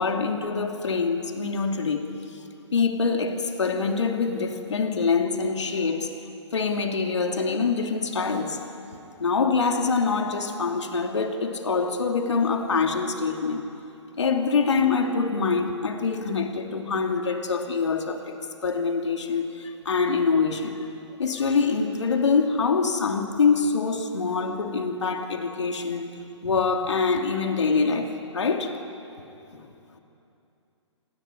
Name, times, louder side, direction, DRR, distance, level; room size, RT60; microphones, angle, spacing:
voice 1, 0.0-2.4 2.7-6.1 6.5-8.6 9.2-13.7 14.2-18.4 18.6-20.8 21.2-26.1 26.4-28.7 29.5-29.7, left 4 dB, 70° left, 4 dB, 2.8 m, -25 dB
29.5 x 20.0 x 9.7 m, 2.8 s
figure-of-eight pair, 130°, 15 cm